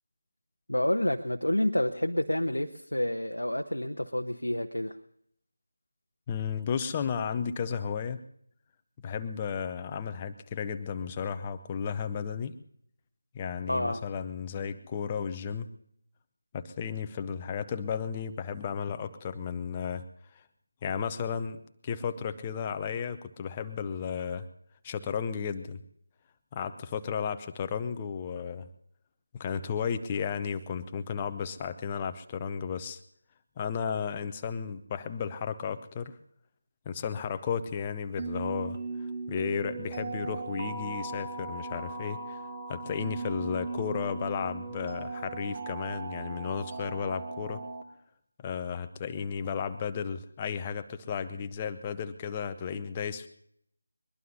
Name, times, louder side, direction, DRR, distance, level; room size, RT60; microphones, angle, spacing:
voice 1, 0.7-5.0 13.7-14.0, left 1 dB, 80° left, 4 dB, 0.9 m, -29 dB
voice 2, 6.3-8.2 9.0-12.6 13.3-15.7 16.5-20.1 20.8-21.6 21.8-24.5 24.8-25.8 26.5-28.7 29.4-33.0 33.6-36.1 36.9-38.8 39.3-42.4 42.7-47.6 48.4-53.3, left 7 dB, 15° left, 10 dB, 0.6 m, -34 dB
sound 1, 38.2-47.8, right 3 dB, 35° right, 1.3 m, -37 dB
22.0 x 21.5 x 2.8 m, 0.69 s
figure-of-eight pair, 160°, 0 cm